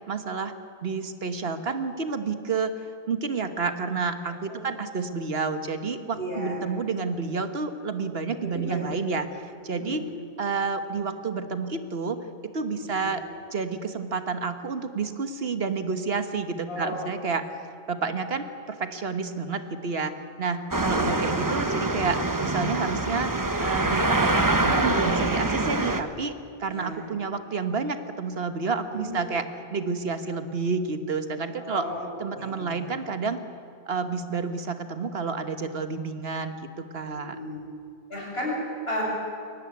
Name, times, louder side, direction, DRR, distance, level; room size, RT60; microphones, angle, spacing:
voice 1, 0.1-0.5 0.8-2.7 3.1-10.0 10.4-13.2 13.5-17.5 17.9-23.3 23.6-26.3 26.6-29.5 29.7-31.8 32.2-33.4 33.8-36.5 36.9-37.4, right 4 dB, 70° right, 8 dB, 1.5 m, -30 dB
voice 2, 6.1-6.6 8.4-8.9 9.6-10.1 12.9-13.1 16.6-17.1 17.4-17.5 26.7-26.9 28.9-29.1 31.6-32.0 32.3-32.8 37.3-37.6 38.1-39.0, equal, 70° left, -3 dB, 7.7 m, -34 dB
sound 1, 20.7-26.0, right 2 dB, 20° right, 1.0 m, -25 dB
22.5 x 18.0 x 9.5 m, 2.3 s
omnidirectional pair, 1.1 m